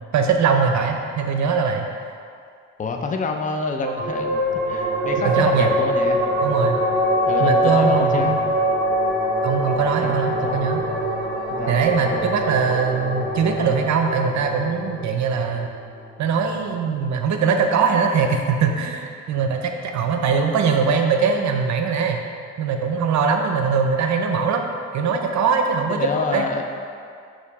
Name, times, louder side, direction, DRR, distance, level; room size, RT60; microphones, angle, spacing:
voice 1, 0.1-1.9 5.2-5.7 6.4-6.8 7.4-8.4 9.4-10.9 11.7-15.7 16.2-22.2 22.6-24.6 24.9-26.1 26.3-26.5, right 5 dB, 65° right, 4 dB, 0.7 m, -21 dB
voice 2, 2.8-6.2 7.3-8.3 10.0-10.7 11.5-12.2 25.9-26.6, left 4 dB, 25° left, 3 dB, 0.5 m, -27 dB
sound 1, 3.8-16.7, equal, 40° right, 1.1 m, -24 dB
6.6 x 3.1 x 4.8 m, 2.3 s
cardioid pair, 90°, 30 cm